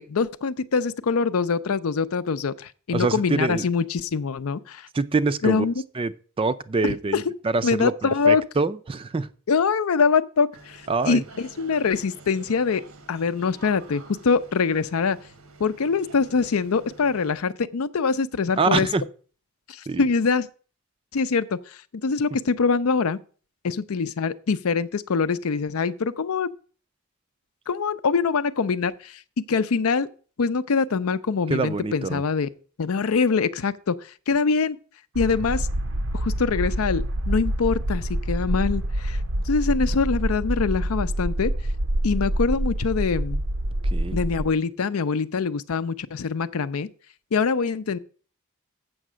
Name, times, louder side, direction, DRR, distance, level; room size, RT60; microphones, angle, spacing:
voice 1, 0.0-4.9 5.4-5.7 6.8-7.2 7.6-8.4 9.5-12.8 13.1-15.2 15.6-18.9 19.7-20.5 21.1-21.6 22.0-23.2 23.6-26.5 27.7-29.2 29.5-30.1 30.4-32.5 32.8-34.0 34.3-34.8 35.1-35.7 36.1-39.2 39.4-41.5 42.0-43.4 44.1-46.9 47.3-48.0, left 5 dB, 80° left, 0.5 m, -24 dB
voice 2, 2.9-3.6 4.9-5.7 6.0-6.1 6.4-9.3 10.9-11.2 18.6-19.0 19.9-20.1 31.5-32.2 43.9-44.2, right 3 dB, 25° right, 0.4 m, -25 dB
sound 1, 10.5-17.4, right 3 dB, 85° right, 1.2 m, -48 dB
sound 2, 35.1-44.5, right 1 dB, 60° right, 0.6 m, -26 dB
7.8 x 6.5 x 6.1 m
head